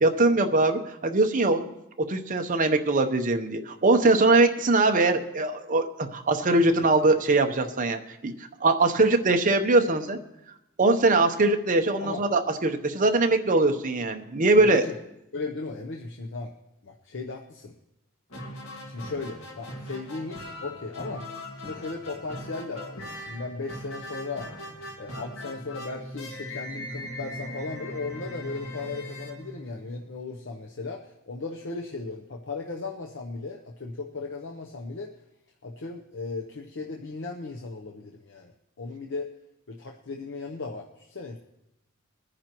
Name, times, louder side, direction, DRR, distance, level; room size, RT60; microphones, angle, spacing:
voice 1, 0.0-1.7 2.0-8.3 8.6-10.2 10.8-14.9, right 2 dB, 40° right, 6 dB, 0.8 m, -22 dB
voice 2, 14.6-15.0 15.3-16.5 16.8-17.8 18.8-21.3 21.6-24.5 25.0-35.1 35.6-38.5 38.8-39.3 39.7-41.4, left 3 dB, 60° left, 2 dB, 0.8 m, -36 dB
sound 1, 18.3-30.2, left 1 dB, 75° left, 1.9 m, -40 dB
21.0 x 10.0 x 3.0 m, 0.88 s
head